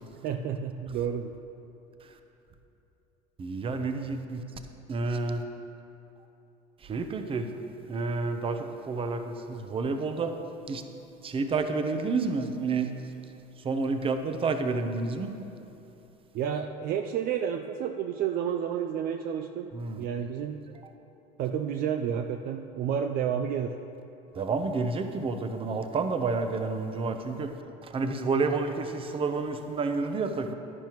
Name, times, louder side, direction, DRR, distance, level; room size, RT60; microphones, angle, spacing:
voice 1, 0.2-1.3 16.3-19.7 20.0-20.6 21.4-23.8, right 8 dB, 55° right, 5 dB, 0.5 m, -30 dB
voice 2, 3.4-4.4 4.9-5.4 6.8-7.5 7.9-10.4 10.7-10.8 11.2-12.9 13.6-15.3 19.7-20.1 24.3-27.6 27.8-30.5, right 4 dB, 30° right, 7 dB, 0.8 m, -29 dB
10.5 x 10.5 x 3.0 m, 3.0 s
supercardioid pair, 100°, 18 cm